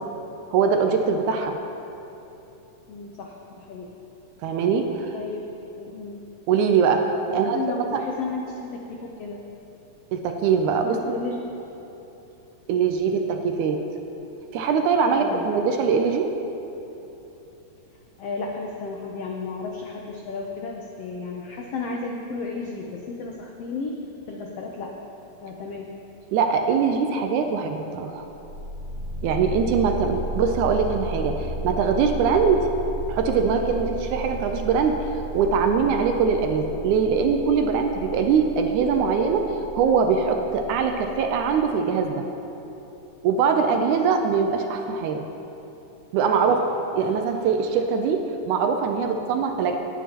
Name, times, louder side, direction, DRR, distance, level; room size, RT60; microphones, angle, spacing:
voice 1, 0.5-1.6 4.4-5.1 6.5-7.6 7.9-8.0 10.1-11.0 12.7-13.8 14.5-16.3 26.3-28.3 29.2-32.6 33.1-35.0 35.3-39.4 39.7-42.2 43.2-45.2 46.1-46.6 47.0-49.8, right 6 dB, 80° right, 4 dB, 1.9 m, -22 dB
voice 2, 2.9-3.9 5.1-5.4 5.8-6.2 7.3-9.4 10.8-11.4 15.2-15.5 18.2-23.9 24.3-24.9 25.4-25.9 30.0-30.1 32.3-32.4 43.6-43.8 46.5-46.6, left 4 dB, 90° left, 0 dB, 1.3 m, -33 dB
sound 1, 28.3-41.7, right 1 dB, 55° right, 2.4 m, -34 dB
18.0 x 9.3 x 2.9 m, 3.0 s
omnidirectional pair, 3.8 m